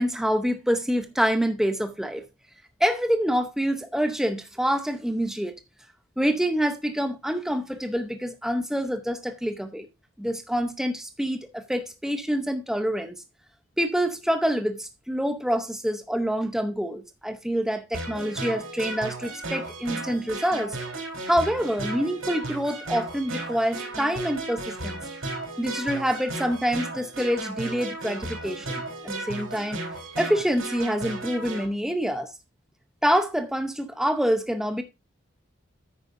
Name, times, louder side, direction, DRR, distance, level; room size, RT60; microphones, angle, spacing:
voice 1, 0.0-2.3 2.8-5.6 6.2-9.9 10.2-13.2 13.8-20.8 21.3-25.0 25.6-29.8 30.2-32.3 33.0-34.8, equal, ahead, 0.7 m, -26 dB
sound 1, 17.9-31.7, right 2 dB, 85° right, 4.2 m, -35 dB
9.6 x 8.8 x 2.6 m
head